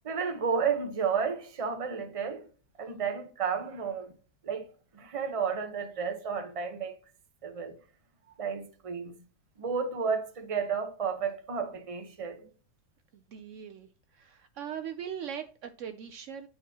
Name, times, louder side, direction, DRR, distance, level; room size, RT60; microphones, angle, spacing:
voice 1, 0.0-2.5 2.8-4.1 4.4-6.9 7.4-7.8 8.4-9.1 9.6-12.5, right 6 dB, 30° right, 0.6 m, -32 dB
voice 2, 13.1-13.9 14.1-16.5, right 8 dB, 90° right, 0.6 m, -40 dB
10.0 x 4.2 x 2.8 m
omnidirectional pair, 1.9 m